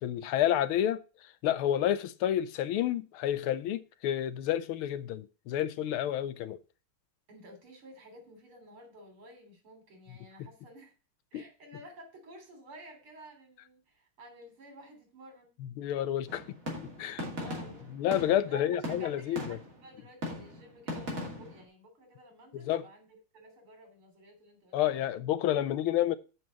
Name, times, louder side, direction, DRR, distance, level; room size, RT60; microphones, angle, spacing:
voice 1, 0.0-1.0 1.4-6.6 11.3-11.4 15.8-16.4 17.0-17.2 17.9-19.6 22.5-22.8 24.7-26.2, left 11 dB, 80° left, 1.5 m, -29 dB
voice 2, 7.3-10.9 11.3-15.6 17.4-17.9 18.5-25.0, right 1 dB, 80° right, 4.1 m, -52 dB
sound 1, 16.3-19.8 20.2-21.6, left 1 dB, 40° right, 3.1 m, -39 dB
7.3 x 5.5 x 7.2 m
omnidirectional pair, 2.3 m